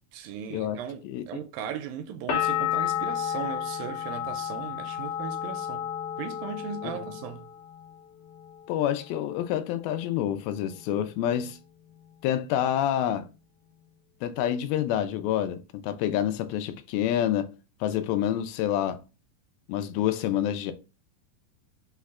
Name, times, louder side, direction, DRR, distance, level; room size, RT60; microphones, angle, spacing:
voice 1, 0.1-5.9 6.2-7.5, right 8 dB, 80° right, 2.1 m, -37 dB
sound 1, 2.3-7.9 8.2-9.0, left 10 dB, 70° left, 2.1 m, -31 dB
voice 2, 8.7-11.6 12.2-13.3 14.2-17.5 17.8-19.0 19.7-20.7, left 11 dB, 85° left, 2.4 m, -27 dB
5.6 x 2.1 x 3.5 m
omnidirectional pair, 4.1 m